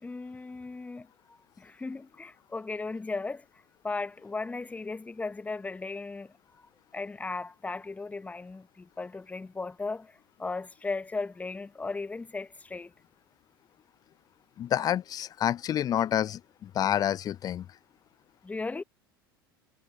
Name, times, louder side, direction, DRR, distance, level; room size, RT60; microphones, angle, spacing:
voice 1, 0.0-3.4 3.8-6.3 6.9-12.9 18.4-18.8, left 3 dB, 10° left, 1.2 m, -36 dB
voice 2, 14.6-17.7, left 10 dB, 30° left, 0.6 m, -28 dB
figure-of-eight pair, 75°, 12 cm